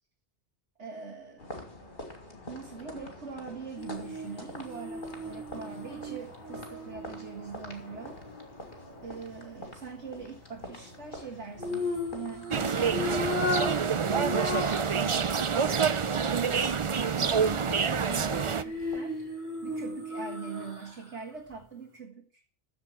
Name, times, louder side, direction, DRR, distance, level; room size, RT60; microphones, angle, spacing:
voice 1, 0.8-1.6 2.5-8.2 9.0-15.8 16.3-16.8 17.2-19.2 19.6-22.4, right 5 dB, 90° right, -1 dB, 2.2 m, -42 dB
sound 1, 1.4-19.0, left 1 dB, 50° left, 2.7 m, -46 dB
sound 2, 3.8-8.0 11.6-15.0 15.3-15.4 18.3-21.2 21.5-21.6, left 2 dB, 15° right, 4.3 m, -35 dB
sound 3, 12.5-18.6, right 6 dB, 40° right, 0.5 m, -27 dB
14.5 x 5.1 x 8.8 m, 0.41 s
omnidirectional pair, 1.1 m